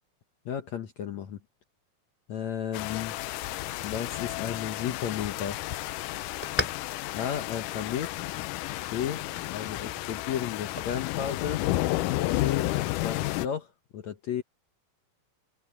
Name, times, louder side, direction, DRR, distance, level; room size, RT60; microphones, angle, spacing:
voice 1, 0.5-1.4 2.3-3.1 3.8-5.6 7.1-8.2 8.9-9.2 9.5-11.6 12.3-14.4, left 9 dB, 65° left, 1.9 m, -33 dB
sound 1, 2.7-13.5, left 17 dB, 85° left, 1.8 m, -32 dB
sound 2, 6.2-13.2, left 1 dB, 5° left, 3.2 m, -42 dB
open air
omnidirectional pair, 4.4 m